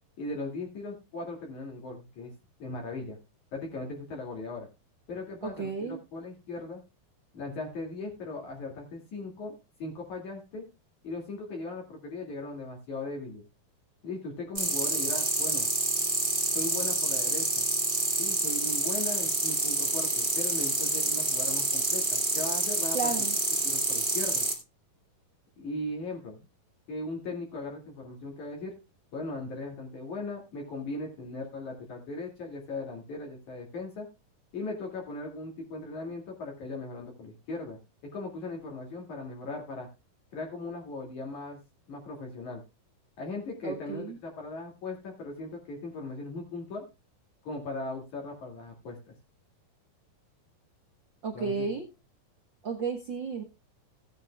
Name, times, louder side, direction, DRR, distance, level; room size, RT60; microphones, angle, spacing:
voice 1, 0.2-2.3 2.6-3.2 3.5-4.7 5.1-6.8 7.3-9.5 9.8-10.6 11.0-13.4 14.0-15.7 16.5-17.6 18.2-23.0 23.6-24.5 25.6-26.5 26.9-28.7 29.1-34.1 34.5-39.9 40.3-41.6 41.9-42.6 43.2-46.8 47.4-49.1 51.3-51.7, left 2 dB, 55° left, -1 dB, 3.7 m, -38 dB
voice 2, 5.4-6.0 22.9-23.3 43.6-44.2 51.2-51.8 52.6-53.4, right 4 dB, 70° right, 3 dB, 1.1 m, -33 dB
sound 1, 14.6-24.6, right 2 dB, 15° right, 2.1 m, -28 dB
17.0 x 9.4 x 2.4 m, 0.26 s
omnidirectional pair, 4.2 m